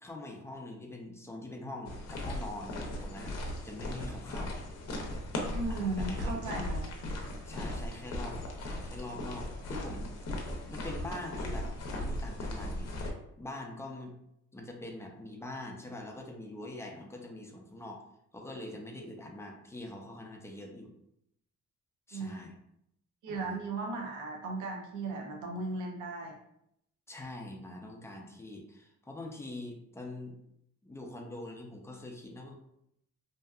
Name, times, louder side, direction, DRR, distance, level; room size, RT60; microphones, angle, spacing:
voice 1, 0.0-2.8 3.0-4.6 5.7-6.6 7.5-8.4 8.8-10.1 10.7-12.9 13.4-14.1 14.5-18.0 18.3-20.9 22.1-22.5 23.3-23.6 27.1-30.4 30.8-32.5, left 1 dB, 10° left, 1 dB, 0.4 m, -44 dB
sound 1, 1.9-13.1, left 1 dB, 55° left, 0.6 m, -37 dB
voice 2, 5.5-6.9 22.1-22.3 23.2-26.4, right 3 dB, 80° right, 0 dB, 0.6 m, -36 dB
2.7 x 2.3 x 2.3 m, 0.77 s
cardioid pair, 90°, 30 cm